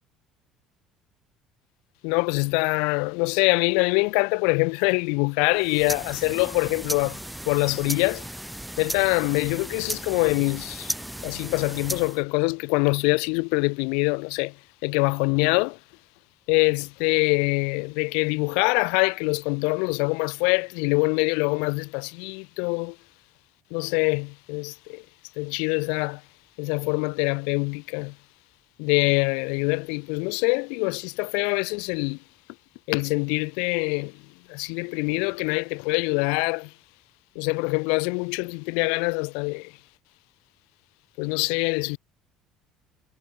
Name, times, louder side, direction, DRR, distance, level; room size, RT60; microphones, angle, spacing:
voice 1, 2.0-7.2 7.5-8.3 8.8-11.0 11.2-15.8 16.5-23.0 23.7-25.1 25.4-26.2 26.6-28.2 28.8-32.2 32.9-36.7 37.4-39.8 41.2-42.0, left 37 dB, 80° left, 0.3 m, -24 dB
sound 1, 5.5-12.2, right 1 dB, 5° right, 0.4 m, -35 dB
supercardioid pair, 80°, 0 cm